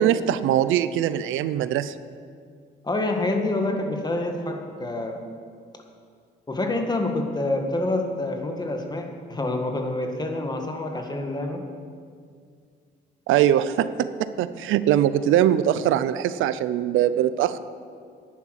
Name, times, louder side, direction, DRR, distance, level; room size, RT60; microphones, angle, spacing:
voice 1, 0.0-1.9 13.3-17.6, right 11 dB, 85° right, 14 dB, 0.5 m, -22 dB
voice 2, 2.8-5.2 6.5-11.6, left 2 dB, 20° left, 3 dB, 1.7 m, -27 dB
10.5 x 10.0 x 6.5 m, 2.1 s
cardioid pair, 90°, 20 cm